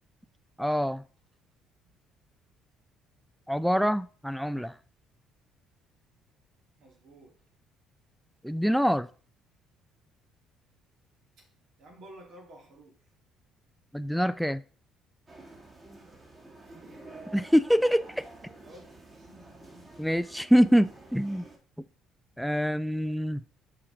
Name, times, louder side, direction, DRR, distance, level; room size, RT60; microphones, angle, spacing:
voice 1, 0.6-1.0 3.5-4.8 8.4-9.1 13.9-14.6 17.3-18.2 20.0-21.4 22.4-23.4, equal, ahead, 13 dB, 0.3 m, -25 dB
voice 2, 6.8-7.4 11.4-11.5 11.8-13.1 16.6-17.2 18.4-19.9, right 1 dB, 65° right, 0 dB, 1.9 m, -53 dB
sound 1, 15.3-21.6, right 2 dB, 30° right, 2.4 m, -49 dB
5.8 x 4.9 x 3.8 m, 0.39 s
hypercardioid pair, 60°, 0 cm